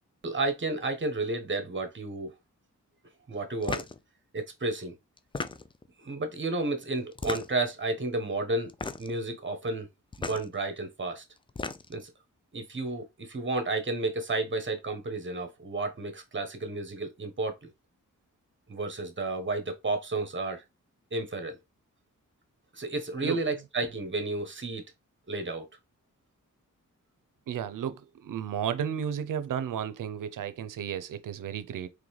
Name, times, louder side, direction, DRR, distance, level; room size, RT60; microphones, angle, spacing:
voice 1, 0.2-2.3 3.3-3.8 4.3-4.9 6.0-8.7 9.0-9.9 10.2-11.2 11.9-12.1 12.5-17.7 18.7-20.6 21.1-21.6 22.7-24.8 25.3-25.7, right 2 dB, 40° right, 1.1 m, -32 dB
sound 1, 3.6-4.0 5.2-5.9 7.1-7.7 8.7-9.2 10.1-10.4 11.4-12.0, left 3 dB, 15° left, 0.3 m, -35 dB
voice 2, 27.5-31.9, right 8 dB, 85° right, 0.6 m, -33 dB
3.9 x 3.2 x 3.1 m
cardioid pair, 65°, 31 cm